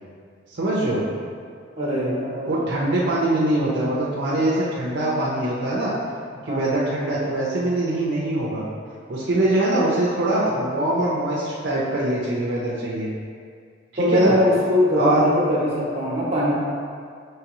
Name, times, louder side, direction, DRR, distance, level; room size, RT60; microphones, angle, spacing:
voice 1, 0.5-1.0 2.5-5.9 6.5-8.6 9.1-13.1 13.9-14.4 14.9-15.3, right 1 dB, 60° right, -6 dB, 0.6 m, -23 dB
voice 2, 1.8-2.5 6.5-6.7 14.0-16.5, left 1 dB, 35° right, -5 dB, 0.9 m, -21 dB
4.8 x 3.1 x 3.0 m, 2.1 s
head